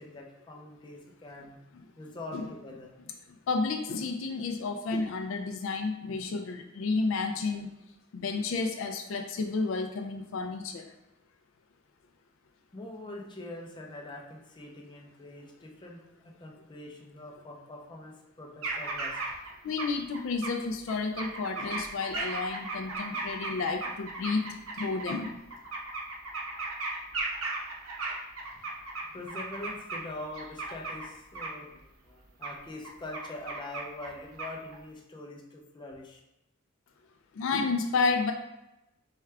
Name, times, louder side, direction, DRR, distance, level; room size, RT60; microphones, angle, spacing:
voice 1, 0.0-1.6 2.0-2.9 12.7-16.0 16.4-19.2 29.1-36.2, left 2 dB, 20° left, -1 dB, 0.6 m, -44 dB
voice 2, 3.5-7.7 8.1-10.9 19.6-24.5 24.8-25.3 37.4-38.3, left 4 dB, 65° left, 5 dB, 0.3 m, -31 dB
sound 1, 18.6-19.5 19.8-20.5 20.9-30.0 30.4-31.1 31.3-31.5 32.4-32.5 32.8-34.1 34.4-34.8, right 3 dB, 90° right, 0.7 m, -36 dB
4.5 x 2.3 x 3.2 m, 0.90 s
head